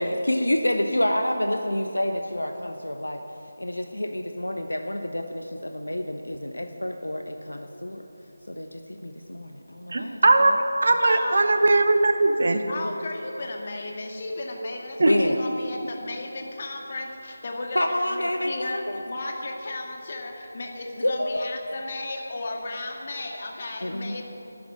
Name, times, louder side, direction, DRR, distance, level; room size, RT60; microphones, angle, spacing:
voice 1, 0.0-3.2 3.6-8.0 8.5-10.2 15.1-15.4 17.7-19.0 21.0-21.5 23.8-24.2, left 1 dB, 75° left, 5 dB, 1.0 m, -28 dB
voice 2, 9.9-12.6 15.0-15.1, right 2 dB, 50° right, 6 dB, 1.3 m, -20 dB
voice 3, 11.0-11.5 12.7-24.2, left 2 dB, 40° left, 2 dB, 2.0 m, -34 dB
12.0 x 9.7 x 9.7 m, 2.9 s
figure-of-eight pair, 160°, 0 cm